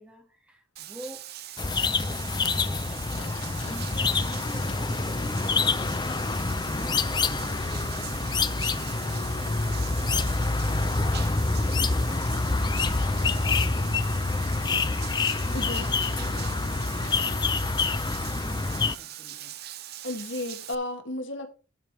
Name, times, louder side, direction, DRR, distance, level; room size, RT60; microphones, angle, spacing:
voice 1, 0.0-1.3 2.0-15.0 15.5-15.9 16.2-19.6, equal, 5° right, 2.1 m, -48 dB
Bathtub (filling or washing), 0.8-20.8, right 12 dB, 50° right, 0.7 m, -41 dB
sound 1, 1.6-18.9, left 3 dB, 20° left, 0.5 m, -27 dB
sound 2, 3.1-17.8, left 3 dB, 90° left, 1.2 m, -44 dB
voice 2, 15.5-15.8 20.0-21.5, left 1 dB, 60° left, 2.0 m, -33 dB
12.0 x 5.1 x 4.5 m
head